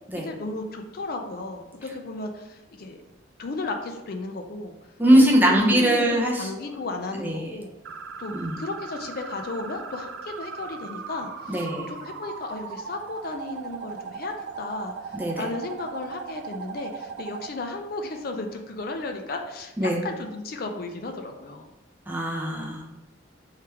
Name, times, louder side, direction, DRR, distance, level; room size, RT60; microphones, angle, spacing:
voice 1, 0.2-3.0 3.4-4.8 5.1-5.2 5.5-7.7 8.2-21.7, left 2 dB, 50° left, 5 dB, 0.4 m, -34 dB
voice 2, 5.0-6.5 7.2-7.5 8.3-8.6 11.5-11.8 15.2-15.4 19.8-20.0 22.1-22.9, right 1 dB, 10° right, -2 dB, 0.7 m, -21 dB
sound 1, 7.8-17.5, right 5 dB, 65° right, 0.3 m, -38 dB
3.4 x 3.2 x 4.5 m, 0.96 s
head